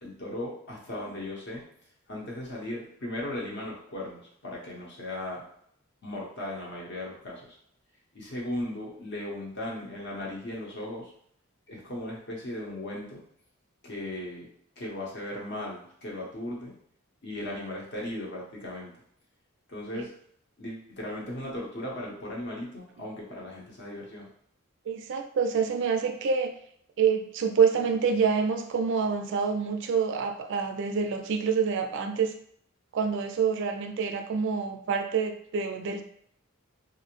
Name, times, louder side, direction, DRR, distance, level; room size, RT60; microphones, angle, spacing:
voice 1, 0.0-1.6 2.1-5.4 6.0-7.6 8.1-11.1 11.7-13.2 13.8-14.5 14.8-16.7 17.2-18.9 19.7-20.1 20.6-24.3, left 1 dB, 55° left, -3 dB, 0.8 m, -37 dB
voice 2, 24.9-26.5 27.0-32.3 32.9-36.0, right 6 dB, 55° right, 5 dB, 0.3 m, -27 dB
2.5 x 2.0 x 2.9 m, 0.66 s
head